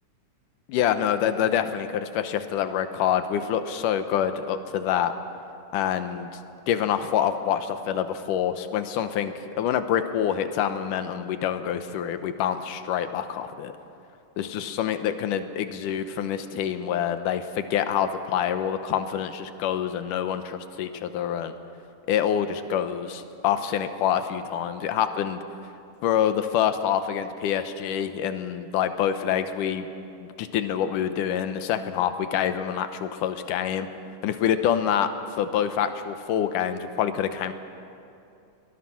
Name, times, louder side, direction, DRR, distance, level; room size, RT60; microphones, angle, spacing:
voice 1, 0.7-5.1 5.7-6.3 6.7-13.7 14.4-21.5 22.1-25.4 26.0-29.9 30.2-33.9 34.2-35.1 35.4-37.5, left 9 dB, 85° left, 9 dB, 2.5 m, -26 dB
22.5 x 20.0 x 5.9 m, 2.6 s
omnidirectional pair, 3.7 m